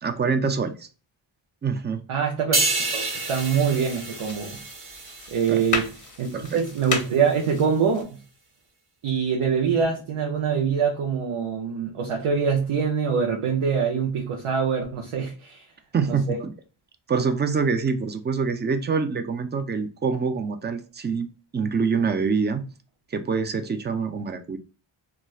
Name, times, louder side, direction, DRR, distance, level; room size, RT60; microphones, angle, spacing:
voice 1, 0.0-0.9 1.6-2.0 5.5-5.6 6.3-6.6 15.9-16.5 17.1-21.3 21.5-22.6 23.1-24.6, right 5 dB, 25° right, 0.3 m, -25 dB
voice 2, 2.1-2.7 2.9-4.6 5.3-5.9 6.2-8.1 9.0-15.7 16.1-16.4, right 6 dB, 85° right, 0.7 m, -24 dB
sound 1, 2.5-6.1 6.4-6.7, right 2 dB, 50° right, 1.0 m, -29 dB
sound 2, 2.9-8.0, left 5 dB, 40° left, 0.6 m, -35 dB
3.0 x 2.3 x 2.3 m
cardioid pair, 55°, 49 cm